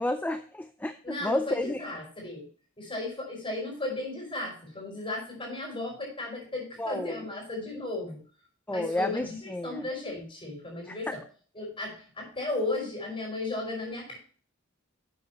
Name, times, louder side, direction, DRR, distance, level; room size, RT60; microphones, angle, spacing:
voice 1, 0.0-1.8 6.8-7.2 8.7-9.9 10.9-11.0, left 1 dB, 10° left, 9 dB, 0.4 m, -31 dB
voice 2, 1.0-2.5 2.8-8.2 8.7-11.2 11.6-14.2, left 2 dB, 25° left, 0 dB, 5.3 m, -35 dB
12.0 x 7.8 x 3.0 m, 0.42 s
head